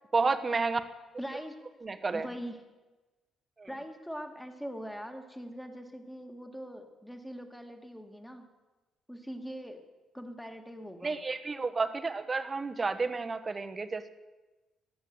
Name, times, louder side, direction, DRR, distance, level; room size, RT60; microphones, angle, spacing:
voice 1, 0.1-0.8 1.8-2.3 3.6-3.7 11.0-14.1, right 4 dB, 30° right, 10 dB, 1.1 m, -31 dB
voice 2, 1.2-1.6 2.1-2.6 3.7-8.5 9.1-9.8 10.1-11.2, equal, 5° left, 5 dB, 2.0 m, -42 dB
16.0 x 11.0 x 7.8 m, 1.2 s
cardioid pair, 90°, 0 cm